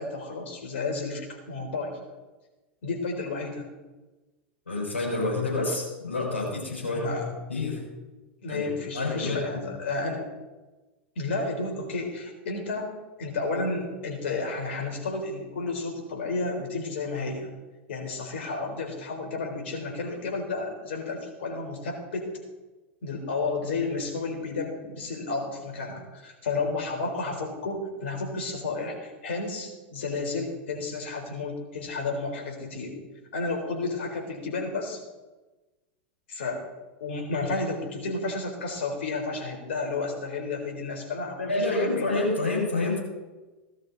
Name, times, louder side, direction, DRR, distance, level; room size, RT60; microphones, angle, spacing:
voice 1, 0.0-2.0 2.8-3.7 6.9-7.3 8.4-10.2 11.2-17.5 17.9-22.3 23.0-32.9 33.3-35.0 36.3-36.6 37.0-42.2, left 3 dB, 70° left, 2 dB, 4.0 m, -32 dB
voice 2, 4.7-7.2 7.5-7.8 8.5-8.6 8.9-9.6 41.5-43.0, left 2 dB, 90° left, -2 dB, 5.3 m, -28 dB
17.0 x 12.0 x 4.1 m, 1.2 s
hypercardioid pair, 95°, 7 cm